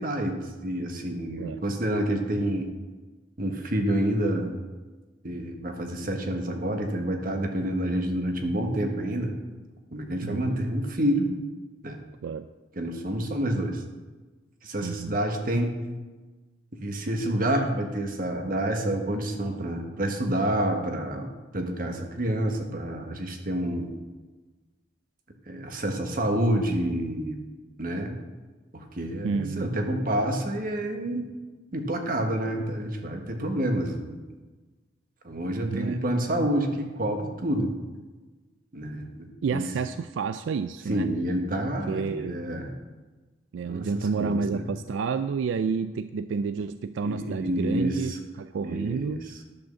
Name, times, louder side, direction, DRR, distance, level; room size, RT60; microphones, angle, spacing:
voice 1, 0.0-2.7 3.4-4.5 5.2-9.3 9.9-11.3 11.8-12.0 12.8-13.8 14.6-15.7 16.7-21.3 21.5-23.9 25.5-27.4 27.8-28.1 28.7-31.3 31.7-34.2 35.2-37.7 38.7-39.6 40.9-42.7 43.7-44.6 47.0-48.2 48.6-49.2, right 1 dB, 50° right, 4 dB, 1.4 m, -28 dB
voice 2, 10.2-10.7 12.2-12.5 14.8-15.2 29.2-29.7 35.6-36.0 39.4-41.1 41.9-42.4 43.5-48.1 48.4-49.2, right 5 dB, 85° right, 12 dB, 0.3 m, -30 dB
10.5 x 6.3 x 6.9 m, 1.3 s
head